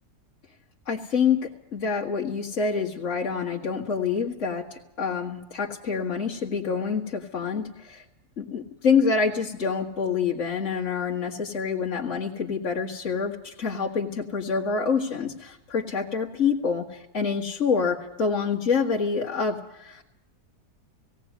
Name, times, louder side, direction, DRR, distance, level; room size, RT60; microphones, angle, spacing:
voice 1, 0.9-8.0 8.4-20.0, left 5 dB, 50° left, -3 dB, 2.1 m, -27 dB
18.0 x 17.5 x 9.4 m, 0.90 s
omnidirectional pair, 1.7 m